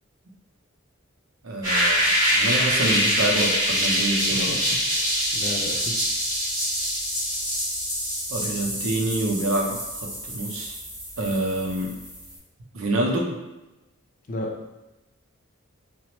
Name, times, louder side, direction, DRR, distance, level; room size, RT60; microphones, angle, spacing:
voice 1, 1.4-4.6 8.3-10.7 11.2-12.0 12.7-13.4, right 1 dB, 75° right, 0 dB, 0.5 m, -27 dB
sound 1, 1.6-12.4, equal, 15° right, 1.1 m, -25 dB
voice 2, 4.3-6.1 14.3-14.5, left 1 dB, 40° left, 0 dB, 0.4 m, -34 dB
2.9 x 2.0 x 2.9 m, 1.0 s
head